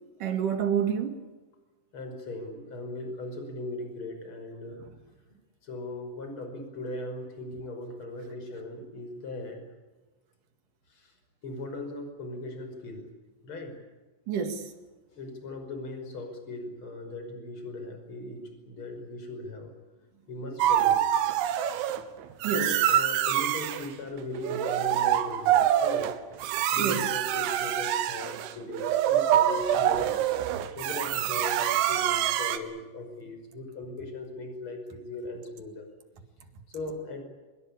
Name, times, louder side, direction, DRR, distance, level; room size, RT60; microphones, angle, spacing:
voice 1, 0.2-1.2 14.3-14.7 22.4-22.8 26.8-27.0, right 7 dB, 50° right, 2.8 m, -28 dB
voice 2, 1.9-4.8 5.6-9.6 10.9-11.1 11.4-13.1 13.4-13.8 15.1-19.7 20.3-21.1 22.5-26.1 26.7-30.2 30.8-35.9 36.7-37.2, left 2 dB, 25° left, 5.8 m, -38 dB
sound 1, 20.6-22.0 22.4-23.9 24.3-32.6, right 11 dB, 75° right, 3.5 m, -25 dB
26.5 x 22.0 x 8.5 m
omnidirectional pair, 5.9 m